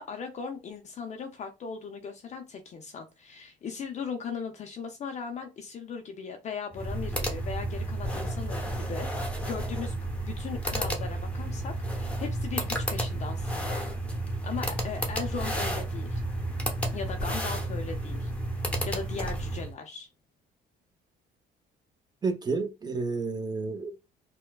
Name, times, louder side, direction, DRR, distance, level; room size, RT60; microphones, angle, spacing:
voice 1, 0.0-9.9 10.2-13.8 14.4-16.2 16.9-18.3 18.8-20.1, left 5 dB, 40° left, 0.5 m, -38 dB
sound 1, 6.7-19.7, right 1 dB, 10° left, 0.8 m, -32 dB
voice 2, 22.2-24.0, right 4 dB, 25° right, 0.7 m, -30 dB
4.3 x 2.2 x 2.3 m
cardioid pair, 110°, 17 cm